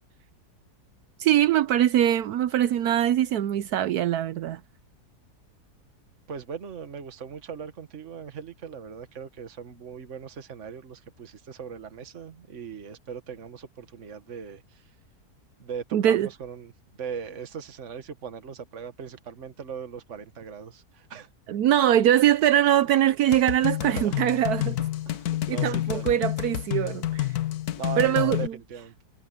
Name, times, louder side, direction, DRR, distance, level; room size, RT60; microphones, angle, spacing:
voice 1, 1.2-4.6 15.9-16.3 21.5-24.8 25.5-27.3 28.0-28.5, right 11 dB, 75° right, 1.2 m, -22 dB
voice 2, 6.3-14.8 15.6-16.7 17.0-21.3 23.6-24.2 25.0-26.1 27.8-29.0, right 7 dB, 50° right, 1.7 m, -39 dB
sound 1, 23.3-28.5, left 13 dB, 75° left, 1.4 m, -29 dB
omnidirectional pair, 1.7 m